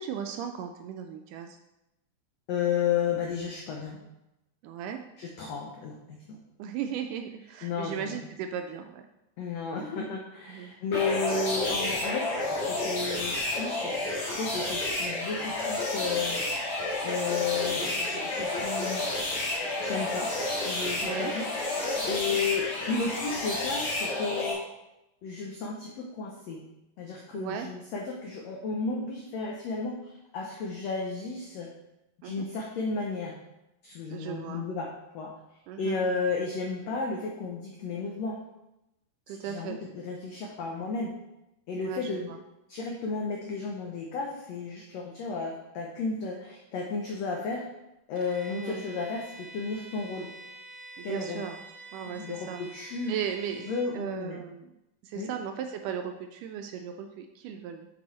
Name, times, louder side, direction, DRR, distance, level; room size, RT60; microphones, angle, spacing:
voice 1, 0.0-1.6 4.6-5.0 6.6-9.0 10.5-10.7 21.0-21.3 27.3-27.7 32.2-32.5 34.1-34.6 35.7-36.2 39.3-39.8 41.8-42.4 48.5-48.8 51.0-51.7 51.9-54.7 55.0-57.9, right 8 dB, 80° right, 6 dB, 1.9 m, -37 dB
voice 2, 2.5-4.0 5.2-6.4 7.6-8.2 9.4-16.5 17.0-19.1 19.8-20.3 20.6-24.6 25.2-26.6 27.0-31.7 32.2-33.3 33.8-35.3 35.8-38.4 39.3-41.1 41.7-42.3 42.7-47.7 48.1-50.3 51.0-51.4 52.1-53.1 53.6-54.4 55.1-55.3, left 4 dB, 90° left, 0 dB, 1.4 m, -33 dB
sound 1, 10.9-24.5, left 2 dB, 55° left, 3.0 m, -30 dB
Bowed string instrument, 48.1-53.9, right 2 dB, 65° right, 1.8 m, -47 dB
8.8 x 4.7 x 4.2 m, 0.92 s
omnidirectional pair, 4.0 m